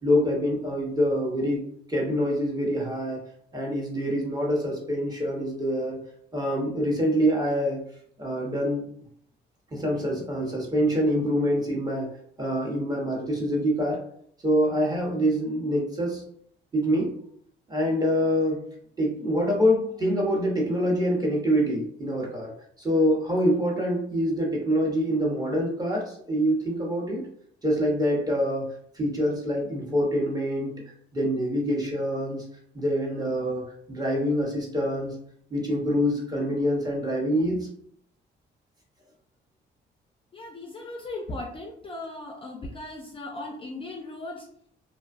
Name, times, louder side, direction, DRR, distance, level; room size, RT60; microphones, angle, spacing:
voice 1, 0.0-1.6 1.9-3.2 3.5-6.0 6.3-7.8 8.2-8.9 9.7-12.1 12.4-14.0 14.4-16.2 16.7-17.1 17.7-18.6 19.0-22.5 22.8-27.2 27.6-28.7 28.9-30.7 31.1-32.4 32.7-35.1 35.5-37.7, equal, 20° right, -2 dB, 0.8 m, -25 dB
voice 2, 40.3-44.4, left 2 dB, 25° left, 1 dB, 0.4 m, -37 dB
2.5 x 2.2 x 2.4 m, 0.65 s
cardioid pair, 90°, 20 cm